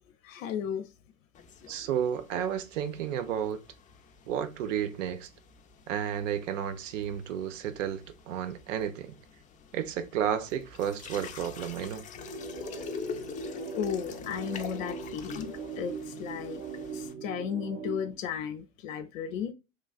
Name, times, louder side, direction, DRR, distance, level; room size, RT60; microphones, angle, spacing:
voice 1, 0.2-0.9 13.8-16.6 16.9-19.5, left 8 dB, 75° left, 0.5 m, -35 dB
sound 1, 1.3-17.1, left 6 dB, 20° left, 0.4 m, -46 dB
voice 2, 1.7-3.6 4.3-5.3 5.9-9.2 9.7-12.1, right 9 dB, 70° right, 0.6 m, -32 dB
sound 2, 12.1-18.1, right 4 dB, 15° right, 0.9 m, -39 dB
3.1 x 2.3 x 2.3 m
hypercardioid pair, 80°, 39 cm